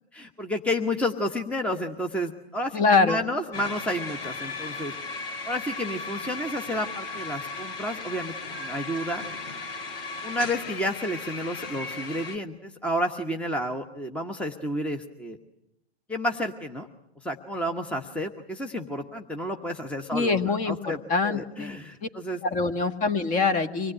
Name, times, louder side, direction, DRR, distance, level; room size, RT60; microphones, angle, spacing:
voice 1, 0.1-4.9 5.4-9.3 10.2-15.4 16.1-16.9 17.2-22.4, equal, 5° left, 5 dB, 1.2 m, -31 dB
voice 2, 2.7-3.2 20.1-22.1 22.4-23.9, left 4 dB, 25° left, 11 dB, 1.6 m, -24 dB
sound 1, 3.5-12.4, left 3 dB, 60° left, 2.5 m, -36 dB
25.5 x 19.0 x 10.0 m, 0.83 s
hypercardioid pair, 120°, 32 cm